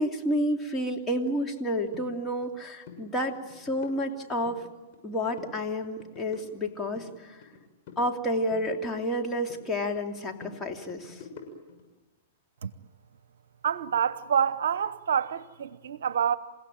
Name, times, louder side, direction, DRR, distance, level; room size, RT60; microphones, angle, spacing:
voice 1, 0.0-4.6 5.0-7.4 8.0-11.2, equal, 15° left, 2.8 m, -30 dB
sound 1, 1.9-2.1 2.4-2.6 2.8-3.0 3.3-4.6 4.9-5.6 5.8-7.6 7.9-9.6 10.0-11.8, left 5 dB, 50° left, 6.9 m, -47 dB
voice 2, 13.6-16.4, right 8 dB, 70° right, 0.9 m, -27 dB
29.0 x 16.5 x 9.2 m
hypercardioid pair, 110°, 0 cm